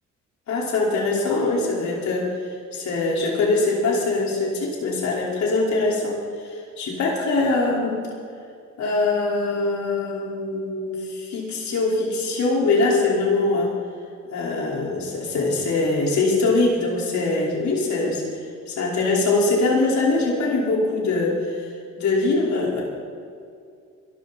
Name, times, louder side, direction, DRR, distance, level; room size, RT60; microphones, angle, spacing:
voice 1, 0.5-2.3 2.7-6.1 6.4-8.0 8.8-13.7 14.3-18.2 18.7-21.7 22.0-22.8, left 3 dB, 65° left, -3 dB, 5.2 m, -22 dB
23.0 x 13.5 x 4.5 m, 2.4 s
cardioid pair, 90°, 30 cm